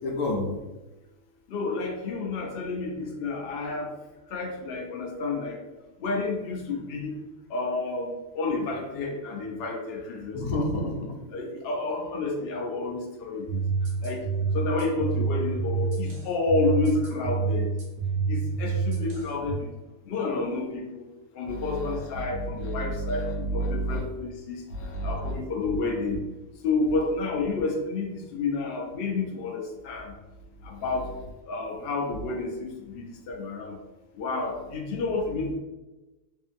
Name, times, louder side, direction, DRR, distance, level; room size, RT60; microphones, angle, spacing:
voice 1, 0.0-0.5 10.3-11.1 21.4-24.0 24.7-25.4, equal, 80° left, 0 dB, 1.1 m, -30 dB
voice 2, 1.5-3.9 4.3-5.6 6.0-7.2 7.5-10.4 11.3-13.6 14.0-14.3 14.5-17.7 18.3-19.7 20.1-21.0 21.4-24.6 25.0-26.2 26.6-30.1 30.6-31.1 31.5-33.8 34.2-35.5, left 3 dB, 65° left, 1 dB, 0.6 m, -30 dB
sound 1, 13.5-19.6, right 4 dB, 70° right, 1.0 m, -28 dB
2.6 x 2.5 x 2.5 m, 1.1 s
omnidirectional pair, 1.5 m